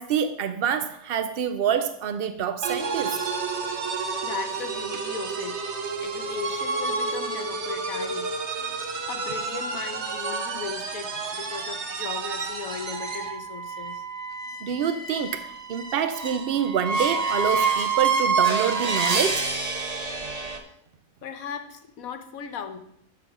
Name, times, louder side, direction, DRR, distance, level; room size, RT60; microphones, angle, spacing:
voice 1, 0.0-3.2 14.6-19.5, right 8 dB, 80° right, 0.5 m, -27 dB
sound 1, 2.6-13.4, right 4 dB, 50° right, 1.1 m, -30 dB
voice 2, 4.2-5.6 6.0-8.3 9.0-14.0 21.2-22.8, left 7 dB, 65° left, 1.3 m, -37 dB
sound 2, 12.9-20.6, right 5 dB, 30° right, 0.9 m, -27 dB
12.0 x 4.2 x 6.0 m
omnidirectional pair, 1.7 m